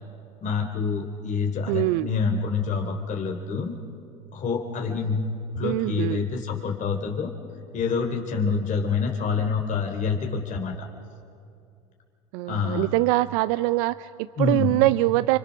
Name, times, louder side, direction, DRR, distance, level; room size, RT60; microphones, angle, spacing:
voice 1, 0.4-3.7 4.3-7.3 7.7-10.9 12.5-12.9 14.4-14.7, left 5 dB, 40° left, 2 dB, 3.3 m, -27 dB
voice 2, 1.7-2.1 5.6-6.2 12.3-15.4, right 19 dB, 70° right, 15 dB, 0.5 m, -23 dB
28.5 x 26.0 x 6.3 m, 2.5 s
hypercardioid pair, 85°, 19 cm